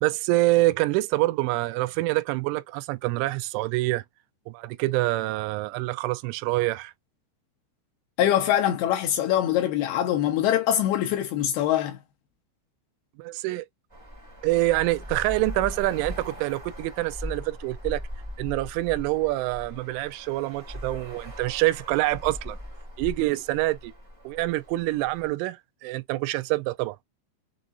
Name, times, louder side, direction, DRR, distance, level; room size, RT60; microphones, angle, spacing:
voice 1, 0.0-4.0 4.5-6.9 13.2-13.7 14.4-18.0 18.4-22.6 23.0-23.9 24.2-27.0, right 19 dB, 85° right, 3.0 m, -26 dB
voice 2, 8.2-12.0, left 11 dB, 85° left, 2.2 m, -23 dB
Traffic noise roadway noise, 13.9-25.3, left 1 dB, 25° right, 0.7 m, -40 dB
7.1 x 2.6 x 2.4 m
omnidirectional pair, 5.5 m